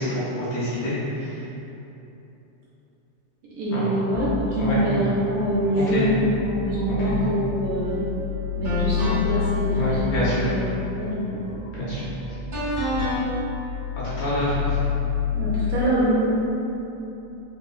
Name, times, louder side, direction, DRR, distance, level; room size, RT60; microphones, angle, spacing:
voice 1, 0.0-1.4 3.7-4.0 4.6-4.8 5.9-6.1 7.0-7.2 9.8-10.5 11.7-12.0 14.0-14.8, equal, 75° left, -9 dB, 1.9 m, -27 dB
voice 2, 3.6-8.0 8.6-10.7 11.0-11.4 15.3-16.4, equal, 75° right, -8 dB, 1.7 m, -24 dB
sound 1, 4.1-15.9, left 7 dB, 90° left, 2.1 m, -30 dB
sound 2, 7.8-8.0 8.6-9.4 12.5-13.3, equal, 45° right, 0.6 m, -27 dB
5.5 x 2.1 x 2.2 m, 2.9 s
omnidirectional pair, 3.5 m